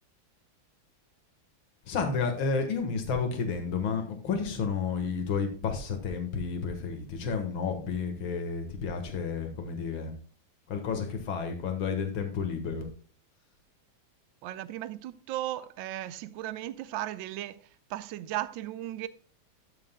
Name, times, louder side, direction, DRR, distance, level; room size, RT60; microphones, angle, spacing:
voice 1, 1.9-10.1 10.7-12.9, left 5 dB, 85° left, 2.3 m, -31 dB
voice 2, 14.4-17.6 17.9-19.1, right 14 dB, 80° right, 1.3 m, -36 dB
13.0 x 7.5 x 2.2 m
omnidirectional pair, 2.2 m